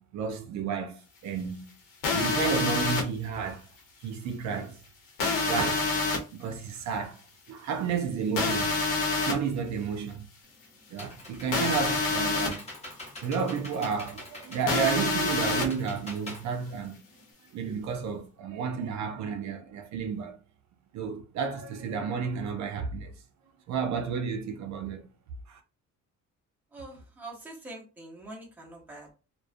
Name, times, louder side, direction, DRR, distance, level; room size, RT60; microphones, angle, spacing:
voice 1, 0.0-1.7 2.1-3.7 4.0-4.8 5.5-5.9 6.3-7.2 7.5-8.8 9.3-10.3 10.9-12.7 13.2-17.0 17.5-20.4 20.9-23.1 23.7-25.0 25.5-25.6, right 6 dB, 60° right, 0.4 m, -31 dB
sound 1, 2.0-3.0 5.2-6.2 8.4-9.3 11.5-12.5 14.7-15.7, left 3 dB, 90° left, 0.9 m, -27 dB
Computer keyboard, 10.4-17.3, left 1 dB, 20° left, 0.9 m, -44 dB
voice 2, 26.7-29.1, right 2 dB, 5° right, 0.6 m, -44 dB
2.3 x 2.1 x 2.4 m
cardioid pair, 175°, 32 cm